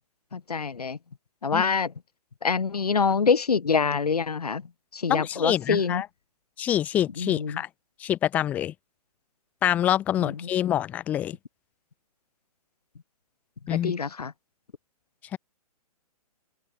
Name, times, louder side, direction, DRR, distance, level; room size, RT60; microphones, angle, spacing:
voice 1, 0.3-1.0 1.4-1.9 2.4-4.6 4.9-6.0 7.2-7.6 10.2-10.4 13.8-14.3, left 5 dB, 70° left, 0.7 m, -25 dB
voice 2, 5.1-6.1 6.6-7.7 8.0-8.7 9.6-11.4 13.7-13.9 15.3-15.4, left 11 dB, 10° left, 0.4 m, -26 dB
figure-of-eight pair, 125°, 20 cm